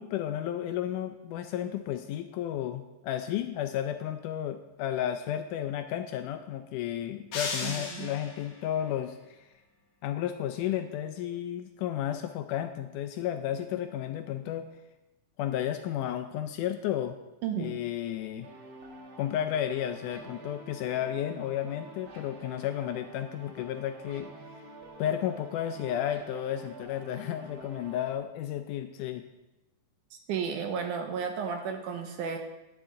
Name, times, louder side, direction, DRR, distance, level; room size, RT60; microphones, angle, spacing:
voice 1, 0.0-9.2 10.0-14.7 15.4-17.2 17.5-18.5 19.2-24.3 25.0-29.2, left 11 dB, 80° left, 8 dB, 1.9 m, -32 dB
sound 1, 7.3-8.6, left 4 dB, 55° left, 1.5 m, -35 dB
voice 2, 7.6-8.1 17.4-17.7 30.3-32.4, right 6 dB, 75° right, 5 dB, 2.0 m, -33 dB
sound 2, 18.4-28.1, right 2 dB, 55° right, 1.5 m, -48 dB
10.5 x 10.0 x 3.8 m, 0.99 s
omnidirectional pair, 4.0 m